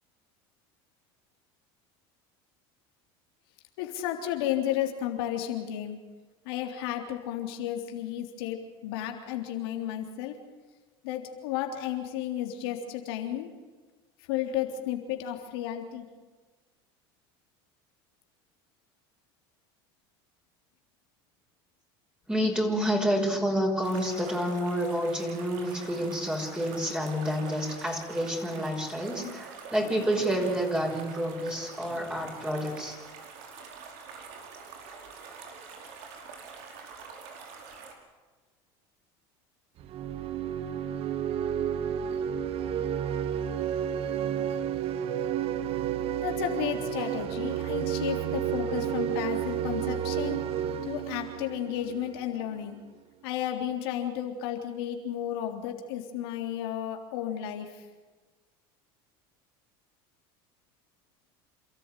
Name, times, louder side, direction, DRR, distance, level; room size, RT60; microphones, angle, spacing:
voice 1, 3.8-6.0 6.5-10.4 11.0-13.5 14.3-16.1 46.2-50.4 50.8-52.8 53.2-57.8, left 11 dB, 80° left, 4 dB, 3.6 m, -33 dB
voice 2, 22.3-33.0, equal, 5° right, 0 dB, 5.5 m, -29 dB
sound 1, 23.8-37.9, right 5 dB, 70° right, 4.9 m, -46 dB
sound 2, 39.8-52.4, right 9 dB, 50° right, 1.2 m, -31 dB
28.0 x 14.0 x 9.2 m, 1.3 s
supercardioid pair, 95°, 12 cm